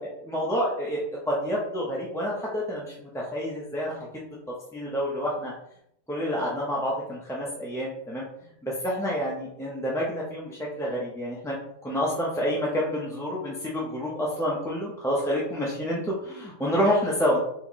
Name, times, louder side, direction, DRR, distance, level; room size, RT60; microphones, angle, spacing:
voice 1, 0.0-4.4 4.7-5.5 6.1-8.3 8.6-11.6 11.8-17.4, equal, 5° left, -5 dB, 0.5 m, -28 dB
4.2 x 3.7 x 3.0 m, 0.74 s
omnidirectional pair, 1.3 m